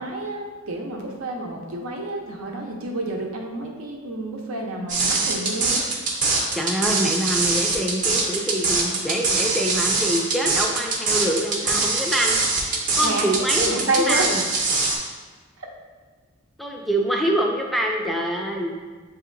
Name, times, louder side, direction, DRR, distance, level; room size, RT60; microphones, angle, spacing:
voice 1, 0.0-5.8 13.0-13.3 13.6-14.2 15.6-15.7, right 2 dB, 90° right, 1 dB, 0.7 m, -29 dB
sound 1, 4.9-15.0, right 3 dB, 40° right, 0.6 m, -23 dB
voice 2, 6.5-12.4 13.0-14.4 16.6-18.8, right 1 dB, ahead, 0 dB, 0.3 m, -25 dB
7.2 x 2.8 x 2.5 m, 1.4 s
head